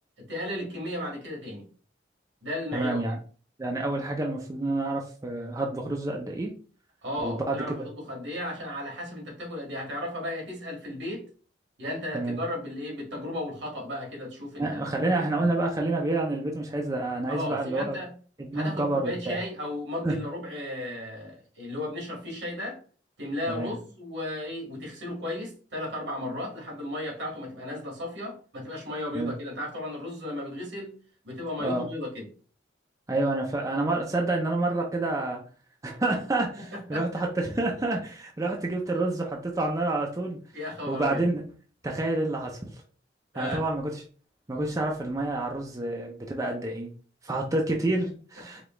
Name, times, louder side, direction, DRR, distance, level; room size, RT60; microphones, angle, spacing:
voice 1, 0.2-1.7 2.4-3.0 7.0-11.3 11.8-14.8 17.3-18.1 18.5-22.8 23.2-31.0 31.2-32.2 36.6-37.0 40.5-41.3 43.3-43.6, left 1 dB, 70° right, 1.7 m, -35 dB
voice 2, 2.7-3.2 3.6-6.5 7.2-7.6 12.1-12.4 14.6-18.0 18.4-19.4 20.0-20.2 23.5-23.7 29.1-29.3 31.6-31.9 33.1-35.4 35.8-40.4 40.9-41.4 41.8-42.8 43.4-44.0 44.5-46.9 47.2-48.6, right 2 dB, 15° right, 0.4 m, -28 dB
4.9 x 2.3 x 3.0 m
head